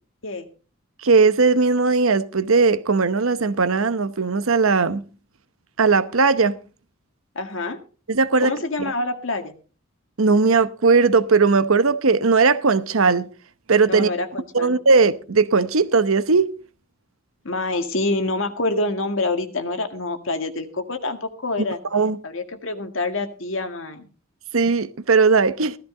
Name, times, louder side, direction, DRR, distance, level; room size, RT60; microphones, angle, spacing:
voice 1, 1.0-5.0 5.8-6.6 8.1-8.5 8.8-8.9 10.2-13.3 13.7-14.1 14.5-16.5 21.9-22.2 24.5-25.7, right 4 dB, 80° right, 0.9 m, -18 dB
voice 2, 7.4-7.8 8.4-9.6 13.9-14.8 17.4-21.8 22.2-24.1, left 2 dB, 65° left, 1.9 m, -26 dB
15.5 x 13.5 x 3.8 m
head